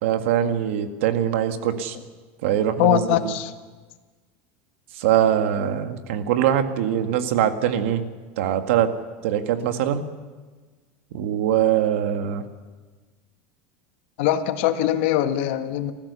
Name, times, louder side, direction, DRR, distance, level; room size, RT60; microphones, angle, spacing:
voice 1, 0.0-2.0 2.4-3.3 5.0-8.0 8.4-8.9 9.2-10.0 11.1-12.4, right 10 dB, 75° right, 7 dB, 1.9 m, -22 dB
voice 2, 2.8-3.5 14.2-15.9, left 11 dB, 60° left, 8 dB, 1.5 m, -22 dB
29.0 x 14.5 x 7.0 m, 1.4 s
supercardioid pair, 165°, 7 cm